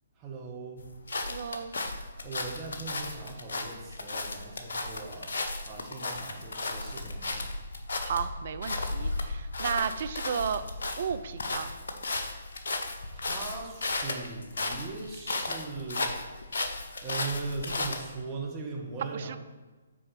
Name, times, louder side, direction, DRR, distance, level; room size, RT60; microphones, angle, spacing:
voice 1, 0.2-0.9 2.2-5.3 5.6-7.5 13.1-16.4 17.0-19.4, right 4 dB, 20° right, -2 dB, 1.7 m, -39 dB
sound 1, 0.8-18.2, left 2 dB, 65° left, 1.0 m, -35 dB
voice 2, 1.3-1.7 8.0-10.6 11.0-11.7 19.1-19.4, right 7 dB, 50° right, 11 dB, 0.5 m, -33 dB
6.2 x 4.6 x 6.6 m, 1.2 s
figure-of-eight pair, 135°, 0 cm